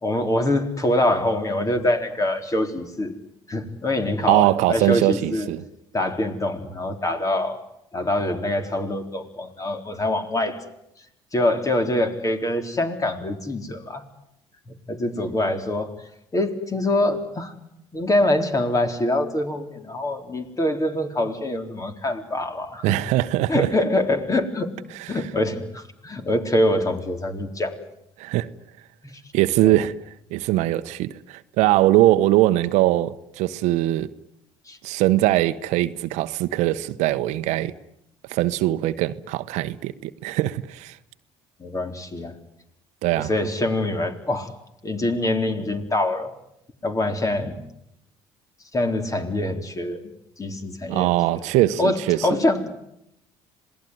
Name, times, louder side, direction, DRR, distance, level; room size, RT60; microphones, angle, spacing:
voice 1, 0.0-3.1 3.5-5.5 5.9-7.6 7.9-10.6 11.3-14.0 14.9-15.9 16.3-17.5 17.9-23.0 23.5-24.7 25.1-27.8 29.6-29.8 34.7-34.8 41.6-42.4 43.2-44.5 44.8-46.3 46.8-47.6 48.7-50.1 50.4-51.1 51.8-52.7, left 1 dB, 30° left, 4.0 m, -24 dB
voice 2, 4.3-5.6 22.8-23.7 28.2-28.5 29.3-29.9 30.3-34.1 34.8-37.7 38.3-41.0 43.0-43.3 50.9-52.3, right 15 dB, 75° right, 1.0 m, -21 dB
27.0 x 19.0 x 9.4 m
supercardioid pair, 80°, 12 cm